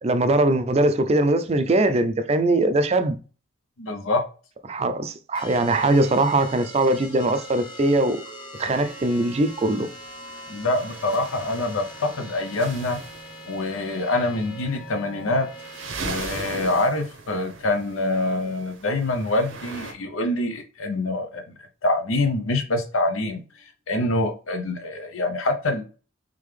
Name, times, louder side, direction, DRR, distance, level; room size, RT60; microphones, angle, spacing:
voice 1, 0.0-3.2 4.7-8.2 8.5-9.9, right 2 dB, 30° right, 0.4 m, -21 dB
voice 2, 3.8-4.2 10.5-13.0 13.5-15.5 16.0-21.4 21.8-23.4 23.9-25.8, left 2 dB, 85° left, 0.7 m, -25 dB
sound 1, 5.3-16.3, equal, 25° left, 0.9 m, -42 dB
sound 2, 8.6-19.9, right 3 dB, 70° right, 0.7 m, -40 dB
3.7 x 3.4 x 3.2 m
head